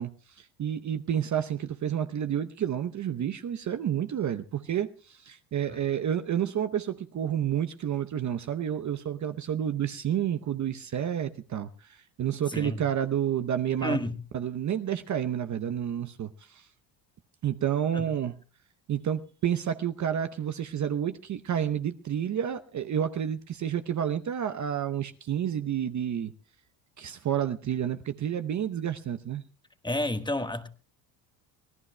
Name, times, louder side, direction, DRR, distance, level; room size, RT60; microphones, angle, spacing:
voice 1, 0.0-14.0 14.3-16.7 17.4-18.4 18.9-26.3 27.0-29.4, right 9 dB, 35° right, 9 dB, 0.8 m, -30 dB
voice 2, 12.5-12.8 13.8-14.2 17.9-18.1 29.8-30.7, left 1 dB, 10° left, 9 dB, 1.3 m, -30 dB
25.5 x 17.5 x 2.2 m, 0.36 s
supercardioid pair, 80°, 48 cm